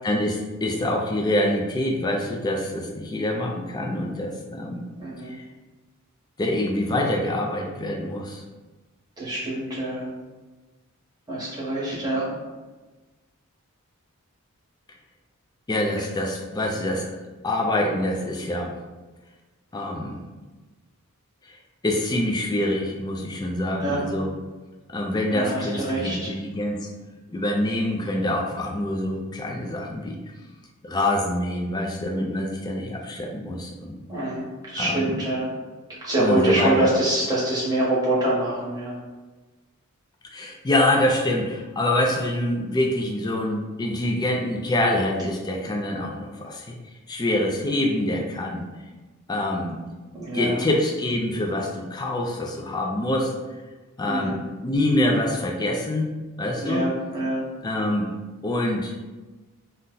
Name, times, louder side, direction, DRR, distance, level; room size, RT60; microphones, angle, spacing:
voice 1, 0.0-4.8 5.2-5.4 6.4-8.4 15.7-17.1 17.4-18.8 19.7-20.2 21.4-21.5 21.8-24.3 24.9-26.9 27.3-30.2 30.8-34.0 34.8-35.2 36.2-36.9 40.3-46.7 47.1-48.7 49.3-49.8 50.3-53.3 54.0-56.9 57.6-58.1 58.4-58.9, left 1 dB, 20° left, 0 dB, 0.3 m, -25 dB
voice 2, 5.0-5.3 9.2-10.1 11.3-12.3 23.7-24.1 25.3-26.3 34.1-35.5 36.0-38.9 50.1-50.6 54.0-54.4 56.6-57.5, right 1 dB, 15° right, -8 dB, 1.0 m, -25 dB
2.6 x 2.1 x 3.8 m, 1.2 s
head